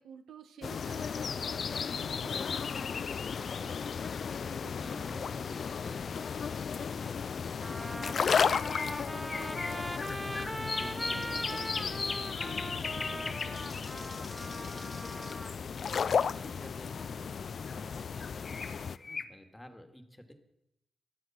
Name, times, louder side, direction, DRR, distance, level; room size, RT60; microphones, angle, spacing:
voice 1, 0.0-5.2, right 7 dB, 85° right, 9 dB, 1.3 m, -54 dB
sound 1, 0.6-19.0, left 6 dB, 60° left, 0.4 m, -34 dB
voice 2, 4.6-20.3, left 1 dB, 10° left, 6 dB, 2.3 m, -52 dB
sound 2, 7.0-7.1 8.0-16.4 17.7-19.3, left 4 dB, 40° left, 1.2 m, -40 dB
Trumpet, 7.6-15.6, right 1 dB, 5° right, 0.5 m, -41 dB
18.0 x 12.0 x 6.0 m, 0.83 s
cardioid pair, 70°, 0 cm